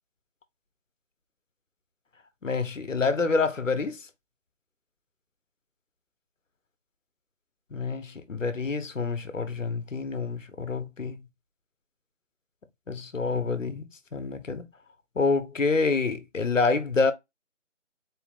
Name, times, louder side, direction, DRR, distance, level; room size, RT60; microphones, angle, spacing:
voice 1, 2.4-4.0 7.7-11.2 12.9-14.7 15.2-17.1, left 4 dB, 80° left, 0.9 m, -27 dB
4.1 x 2.2 x 4.0 m
figure-of-eight pair, 165°, 37 cm